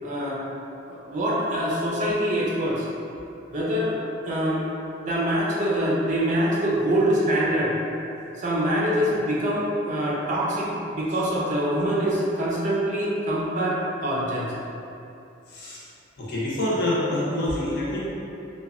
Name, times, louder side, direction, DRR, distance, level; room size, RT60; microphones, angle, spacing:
voice 1, 0.0-0.4 0.8-2.9 3.5-3.9 4.3-4.6 5.0-7.7 8.4-14.6, equal, 40° right, -5 dB, 0.4 m, -24 dB
voice 2, 15.5-15.9 16.2-18.0, left 1 dB, 55° left, -7 dB, 0.6 m, -26 dB
2.8 x 2.2 x 2.3 m, 2.7 s
head